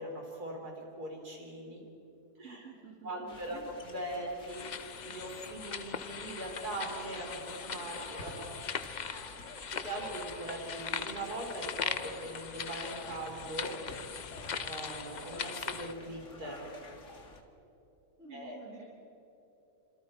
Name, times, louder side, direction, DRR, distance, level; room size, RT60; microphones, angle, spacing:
voice 1, 0.0-1.8 2.4-2.7 3.0-4.7 5.0-8.6 9.7-14.3 14.6-16.7 18.3-18.6, right 1 dB, 65° right, 0 dB, 4.6 m, -41 dB
voice 2, 2.4-3.7 18.2-18.9, right 4 dB, 45° right, -4 dB, 3.3 m, -50 dB
sound 1, 3.3-17.4, left 2 dB, 45° left, 2.0 m, -50 dB
sound 2, 4.5-15.9, left 6 dB, 70° left, 0.4 m, -40 dB
28.5 x 26.0 x 4.5 m, 2.9 s
omnidirectional pair, 1.8 m